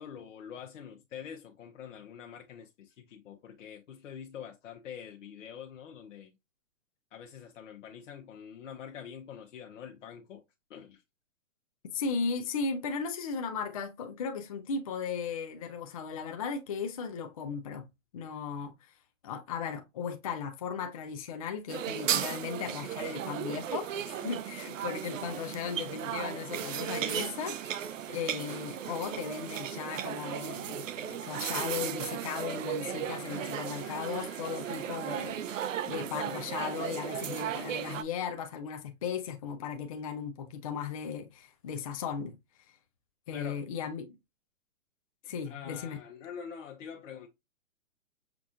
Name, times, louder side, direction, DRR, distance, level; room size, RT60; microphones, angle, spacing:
voice 1, 0.0-6.3 7.1-10.4 10.7-11.0 43.3-43.6 45.2-47.3, left 8 dB, 65° left, 0.8 m, -45 dB
voice 2, 11.9-17.9 18.1-18.9 19.2-42.4 43.3-44.2 45.3-46.0, left 6 dB, 30° left, 0.4 m, -36 dB
sound 1, 21.7-38.0, right 9 dB, 70° right, 0.6 m, -36 dB
Gong, 32.5-37.2, left 4 dB, 10° left, 1.0 m, -57 dB
5.9 x 2.3 x 2.5 m
hypercardioid pair, 155°, 40 cm